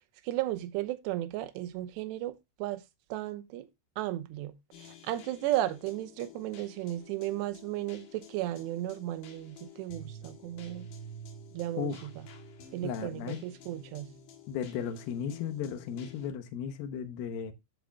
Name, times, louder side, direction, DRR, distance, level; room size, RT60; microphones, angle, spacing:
voice 1, 0.2-2.8 3.1-3.7 4.0-4.5 4.8-10.9 11.5-12.1 12.7-14.1, right 14 dB, 80° right, 2.7 m, -34 dB
sound 1, 4.7-16.3, left 1 dB, 60° left, 3.0 m, -50 dB
voice 2, 11.8-12.1 12.8-13.5 14.5-17.5, left 8 dB, 80° left, 2.1 m, -35 dB
15.5 x 5.2 x 2.3 m
omnidirectional pair, 5.7 m